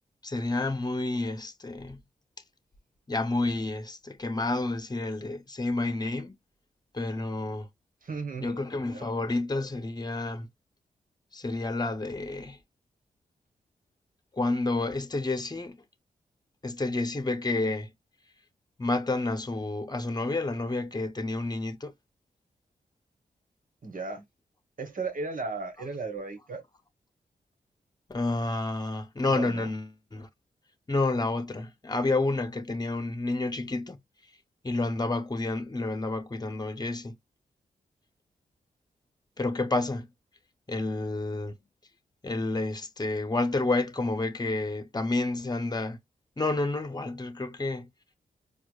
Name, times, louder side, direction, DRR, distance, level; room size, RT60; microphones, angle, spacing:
voice 1, 0.2-2.0 3.1-6.4 6.9-7.7 8.4-10.5 11.3-12.6 14.3-15.8 16.6-17.9 18.8-21.9 28.1-30.3 30.9-34.0 34.6-37.1 39.4-40.1 40.7-41.6 42.2-46.0 46.4-47.9, left 2 dB, 25° left, 0.9 m, -30 dB
voice 2, 8.0-8.6 8.9-9.1 23.8-24.2 24.8-26.6 29.3-29.7, right 4 dB, 60° right, 1.4 m, -35 dB
4.6 x 2.4 x 2.3 m
supercardioid pair, 45°, 16 cm